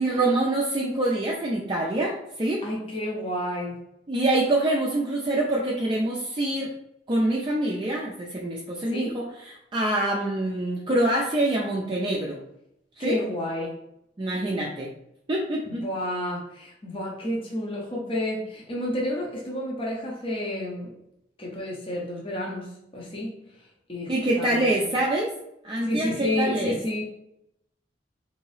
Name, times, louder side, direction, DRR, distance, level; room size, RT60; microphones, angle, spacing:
voice 1, 0.0-2.6 4.1-6.7 7.1-12.4 13.0-13.2 14.2-14.9 15.3-15.8 24.1-25.3 25.6-26.8, right 1 dB, 25° right, -3 dB, 0.4 m, -25 dB
voice 2, 2.6-3.8 8.9-9.1 13.0-13.8 15.6-20.9 21.4-23.3 23.9-25.0 25.8-27.0, left 1 dB, 30° left, -3 dB, 0.7 m, -30 dB
3.6 x 2.6 x 3.2 m, 0.81 s
head